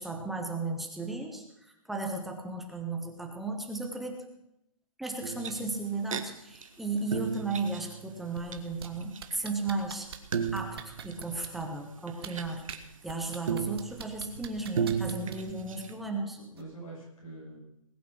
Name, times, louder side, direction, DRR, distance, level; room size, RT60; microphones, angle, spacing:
voice 1, 0.0-4.2 5.0-10.1 10.5-12.6 13.0-16.4, right 3 dB, ahead, 2 dB, 0.5 m, -35 dB
sound 1, 5.2-6.2 6.5-6.7 7.0-8.5 8.8-12.8 13.5-15.9, right 7 dB, 70° right, 1.6 m, -35 dB
sound 2, 8.4-8.9 9.2-11.6 12.1-12.8 13.1-15.5 16.6-16.7, right 8 dB, 45° right, 1.5 m, -42 dB
voice 2, 15.0-15.4 16.4-17.6, right 1 dB, 80° left, -3 dB, 7.5 m, -45 dB
19.5 x 8.6 x 6.0 m, 0.82 s
hypercardioid pair, 175°, 18 cm